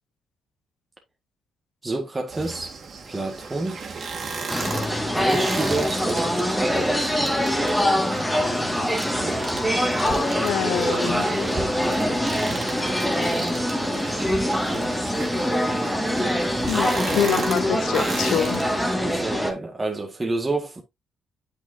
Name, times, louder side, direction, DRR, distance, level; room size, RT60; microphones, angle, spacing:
voice 1, 1.8-2.8 3.0-3.8 5.1-7.2 19.0-20.8, right 2 dB, 20° right, 1.7 m, -28 dB
sound 1, 2.3-18.9, right 4 dB, 50° right, 2.4 m, -35 dB
sound 2, 4.5-19.5, equal, ahead, 2.0 m, -24 dB
voice 2, 10.4-11.3 16.7-18.6, left 10 dB, 80° left, 0.9 m, -25 dB
8.7 x 6.1 x 2.7 m
cardioid pair, 90°, 0 cm